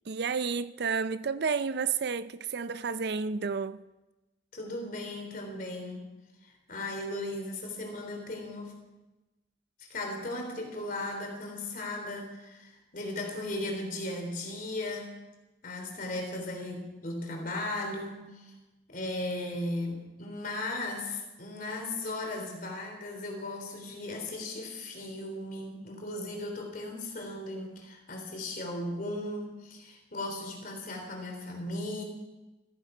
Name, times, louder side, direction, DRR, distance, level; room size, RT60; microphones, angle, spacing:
voice 1, 0.1-3.8, right 5 dB, 65° right, 0.5 m, -31 dB
voice 2, 4.5-6.1 6.4-8.8 9.8-15.1 15.6-18.5 18.9-32.0, left 2 dB, 50° left, 3.4 m, -37 dB
14.5 x 14.0 x 5.0 m
head